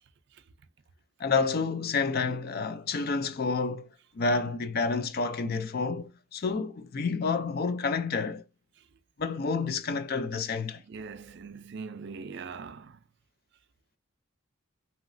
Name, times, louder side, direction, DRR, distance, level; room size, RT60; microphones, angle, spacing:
voice 1, 1.2-3.9 4.2-8.4 9.2-10.8, left 4 dB, 45° left, 0.4 m, -29 dB
voice 2, 10.8-13.0, right 5 dB, 55° right, 0.4 m, -42 dB
3.0 x 2.8 x 2.5 m
head